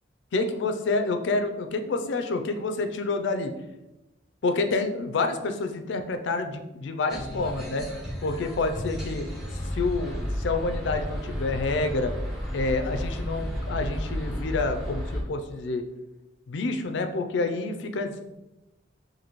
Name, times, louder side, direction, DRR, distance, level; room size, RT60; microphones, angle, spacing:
voice 1, 0.3-3.5 4.4-7.9 8.2-9.2 9.7-12.1 12.5-15.8 16.5-18.2, left 3 dB, 70° left, 6 dB, 0.4 m, -28 dB
sound 1, 7.1-15.2, equal, ahead, 0.9 m, -33 dB
4.1 x 2.6 x 3.0 m, 0.96 s
head